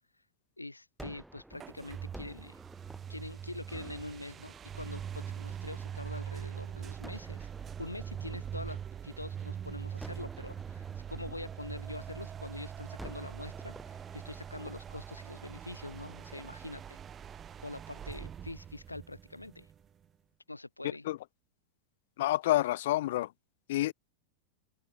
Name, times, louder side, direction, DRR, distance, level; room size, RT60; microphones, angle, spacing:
voice 1, 0.6-2.6 3.1-7.5 7.8-8.8 9.0-17.0 17.6-19.7 20.5-21.0, left 2 dB, 85° left, 0.7 m, -44 dB
Gunshot gunfire, 1.0-6.1 7.0-9.4 10.0-12.5 13.0-18.2, right 1 dB, 5° right, 2.6 m, -53 dB
sound 1, 1.5-20.0, right 8 dB, 25° right, 1.2 m, -43 dB
voice 2, 22.2-23.3 23.7-23.9, left 15 dB, 55° left, 0.3 m, -28 dB
open air
figure-of-eight pair, 90°, 0 cm